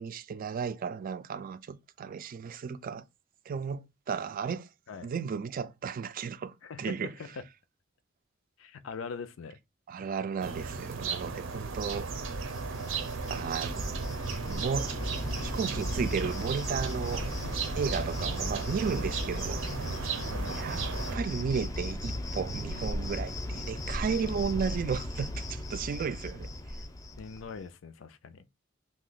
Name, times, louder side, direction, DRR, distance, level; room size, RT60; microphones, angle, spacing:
voice 1, 0.0-3.0 3.5-4.7 5.0-7.1 9.9-12.1 13.3-14.2 14.5-15.0 15.4-17.3 17.8-20.1 20.5-20.8 21.1-26.5, right 6 dB, 45° right, 0.3 m, -34 dB
voice 2, 6.6-7.4 8.6-9.6 20.3-20.7 27.2-28.4, left 5 dB, 80° left, 0.5 m, -42 dB
sound 1, 10.4-21.2, right 5 dB, 85° right, 0.6 m, -35 dB
Cricket, 11.9-27.6, left 1 dB, 20° left, 0.5 m, -37 dB
2.7 x 2.2 x 3.9 m
head